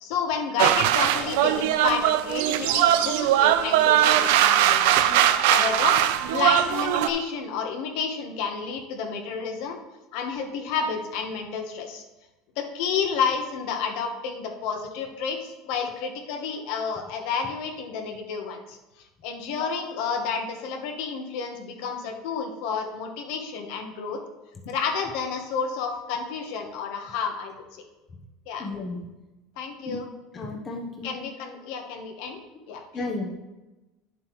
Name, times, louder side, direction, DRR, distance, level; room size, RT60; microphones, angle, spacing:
voice 1, 0.0-4.8 5.4-6.0 6.3-9.8 10.1-12.0 12.6-18.8 19.2-24.2 24.6-27.8 28.5-28.7 29.6-30.1 31.0-32.4 32.7-32.8, left 6 dB, 65° left, 4 dB, 1.2 m, -30 dB
sound 1, 0.6-7.1, right 11 dB, 80° right, 0.5 m, -20 dB
voice 2, 28.6-29.0 29.8-30.0 30.3-31.2 32.9-33.3, left 2 dB, 20° left, 1 dB, 0.9 m, -34 dB
9.8 x 7.5 x 3.1 m, 1.1 s
cardioid pair, 165°, 0 cm